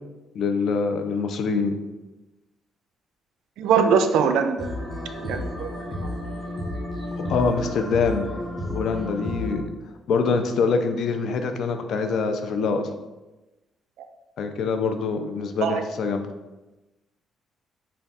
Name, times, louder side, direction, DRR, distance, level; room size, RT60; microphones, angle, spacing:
voice 1, 0.3-1.7 7.3-8.3 8.6-9.7 10.1-12.9 14.4-16.2, left 4 dB, 70° left, 7 dB, 0.4 m, -24 dB
voice 2, 3.6-4.7 5.2-5.7 15.6-15.8, right 6 dB, 85° right, 8 dB, 0.3 m, -21 dB
sound 1, 4.6-9.6, left 1 dB, 20° left, 0.9 m, -32 dB
3.4 x 2.2 x 4.0 m, 1.1 s
cardioid pair, 90°, 0 cm